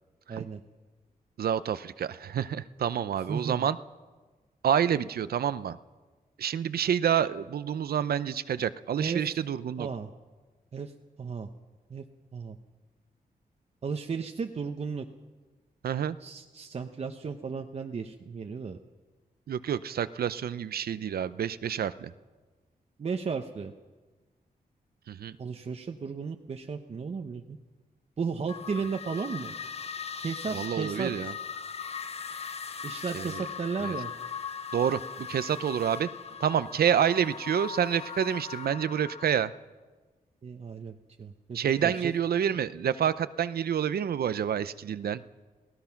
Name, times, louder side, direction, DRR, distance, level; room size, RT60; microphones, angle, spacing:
voice 1, 0.3-0.6 3.3-3.7 9.0-9.3 9.8-10.1 10.7-10.9 11.2-11.5 11.9-12.0 12.3-12.6 13.8-15.1 16.2-18.8 23.0-23.7 25.4-27.6 28.2-29.5 30.2-31.1 32.8-34.1 40.4-42.1, right 5 dB, 45° right, 4 dB, 0.9 m, -34 dB
voice 2, 1.4-3.8 4.6-5.8 6.4-9.9 15.8-16.2 19.5-22.1 25.1-25.4 30.5-31.3 33.1-33.4 33.8-34.0 34.7-36.1 36.4-39.5 41.5-45.2, right 9 dB, 85° right, 14 dB, 0.7 m, -28 dB
sound 1, 28.5-39.2, left 6 dB, 40° left, 0.9 m, -39 dB
28.5 x 17.5 x 5.9 m, 1.3 s
wide cardioid pair, 150°, 15 cm